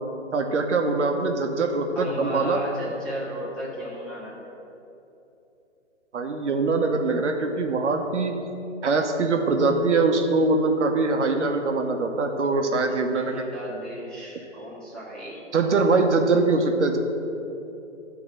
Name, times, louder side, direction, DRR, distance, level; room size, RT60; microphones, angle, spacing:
voice 1, 0.3-2.6 6.1-8.3 8.8-13.3 15.5-17.0, right 3 dB, 75° right, 4 dB, 1.0 m, -23 dB
voice 2, 1.9-4.5 12.5-15.4, equal, ahead, -8 dB, 1.3 m, -35 dB
10.5 x 3.9 x 6.0 m, 2.8 s
hypercardioid pair, 145°, 36 cm